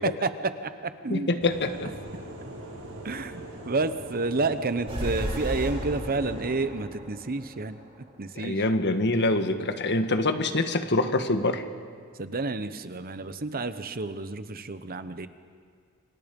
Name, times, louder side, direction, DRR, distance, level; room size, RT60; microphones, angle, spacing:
voice 1, 0.0-1.3 3.0-7.8 8.2-8.6 12.2-15.3, right 3 dB, 45° right, 11 dB, 1.0 m, -30 dB
voice 2, 1.1-1.9 8.4-11.6, left 2 dB, 55° left, 8 dB, 1.6 m, -25 dB
sound 1, 1.4-6.5, right 1 dB, 70° right, 6.2 m, -41 dB
sound 2, 4.9-8.3, equal, 25° right, 5.9 m, -34 dB
29.0 x 26.5 x 5.4 m, 2.1 s
head